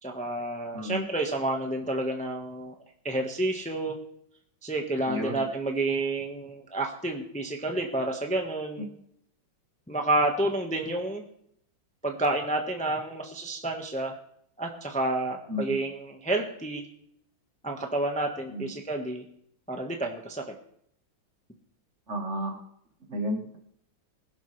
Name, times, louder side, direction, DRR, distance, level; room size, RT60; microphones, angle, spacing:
voice 1, 0.0-2.7 3.0-4.0 4.6-8.9 9.9-11.2 12.0-14.1 14.6-16.8 17.6-19.2 19.7-20.5, right 2 dB, 5° left, 2 dB, 1.1 m, -29 dB
voice 2, 5.1-5.4 15.5-15.8 18.5-18.7 22.1-22.6 23.1-23.6, equal, 40° right, 3 dB, 1.5 m, -32 dB
20.5 x 11.5 x 3.3 m, 0.70 s
omnidirectional pair, 2.2 m